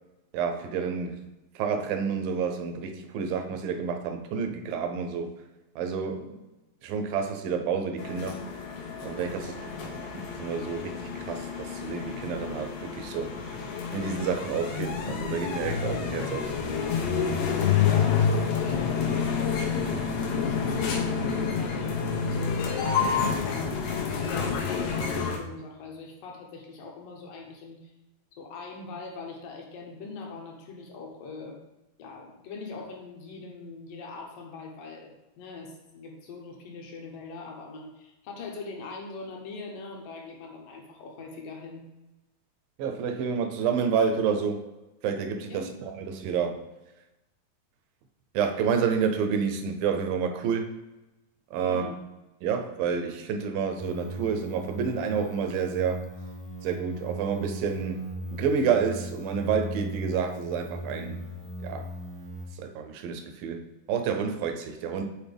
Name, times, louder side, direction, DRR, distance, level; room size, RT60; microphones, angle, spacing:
voice 1, 0.3-1.3 1.6-5.3 5.8-6.4 6.8-8.4 9.0-9.6 9.8-10.1 10.3-13.4 13.9-16.5 42.8-44.7 45.0-46.6 48.3-50.7 51.5-51.9 52.4-56.1 56.6-58.0 58.3-61.3 61.6-61.8 62.6-65.0, right 6 dB, 75° right, 2.2 m, -29 dB
sound 1, 8.0-25.4, left 6 dB, 90° left, 3.1 m, -28 dB
voice 2, 9.3-9.9 17.7-19.6 20.2-22.8 23.4-27.9 28.4-31.6 32.0-35.1 35.4-41.9 45.5-45.8 51.6-52.0, left 3 dB, 70° left, 2.3 m, -42 dB
sound 2, 53.8-62.4, right 1 dB, 10° left, 0.5 m, -39 dB
8.3 x 4.2 x 3.4 m
omnidirectional pair, 4.5 m